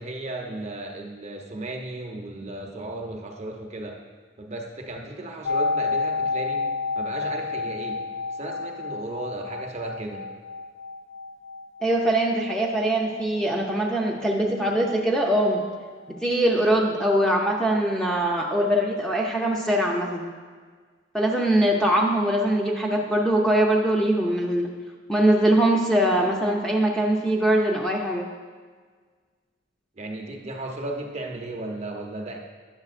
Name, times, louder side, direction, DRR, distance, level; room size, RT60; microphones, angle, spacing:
voice 1, 0.0-4.0 4.4-6.6 7.0-8.0 8.3-10.3 30.0-32.4, right 2 dB, 35° right, 1 dB, 0.7 m, -35 dB
sound 1, 5.4-15.2 15.5-15.6, left 4 dB, 80° left, 0.4 m, -31 dB
voice 2, 11.8-15.6 16.1-20.3 21.1-24.7 25.1-28.3, right 1 dB, 5° left, -2 dB, 0.5 m, -22 dB
9.6 x 6.9 x 2.5 m, 1.5 s
head